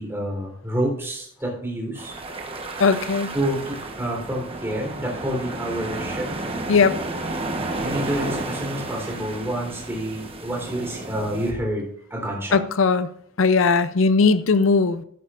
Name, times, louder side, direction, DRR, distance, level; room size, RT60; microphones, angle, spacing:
voice 1, 0.0-2.1 3.3-6.3 7.8-12.6, right 1 dB, 10° right, 3.8 m, -28 dB
sound 1, 2.0-11.5, right 2 dB, 25° right, 1.2 m, -32 dB
voice 2, 2.8-3.3 6.7-7.0 12.5-13.1 13.4-15.0, left 4 dB, 75° left, 0.6 m, -18 dB
12.5 x 12.0 x 2.5 m
head